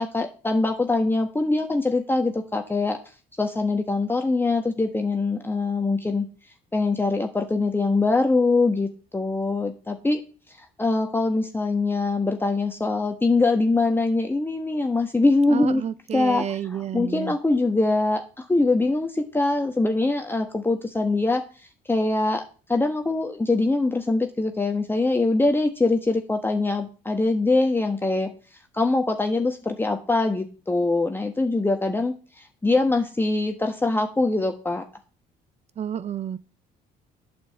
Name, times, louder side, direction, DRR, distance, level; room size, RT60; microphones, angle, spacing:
voice 1, 0.0-3.0 3.4-6.3 6.7-10.2 10.6-15.8 16.1-16.4 16.7-21.4 21.9-22.4 22.7-28.3 28.7-34.8, left 3 dB, 10° left, 1.2 m, -23 dB
voice 2, 15.5-17.4 35.8-36.4, right 8 dB, 40° right, 0.5 m, -30 dB
8.7 x 5.4 x 7.9 m
cardioid pair, 110°, 17 cm